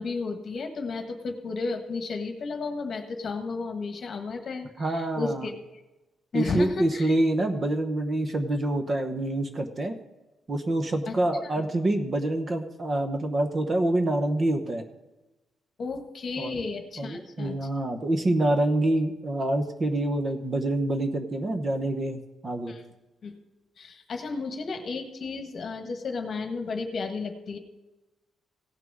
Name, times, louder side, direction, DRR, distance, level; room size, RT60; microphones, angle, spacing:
voice 1, 0.0-5.5 6.3-7.1 11.1-11.6 15.8-17.7 22.7-22.8 23.2-23.3 23.8-27.6, left 4 dB, 40° left, 5 dB, 1.4 m, -33 dB
voice 2, 4.8-5.5 6.3-10.0 10.5-14.8 16.4-16.6 17.0-22.7, right 1 dB, 30° right, 5 dB, 0.9 m, -26 dB
16.5 x 6.0 x 4.7 m, 1.1 s
cardioid pair, 160°, 0 cm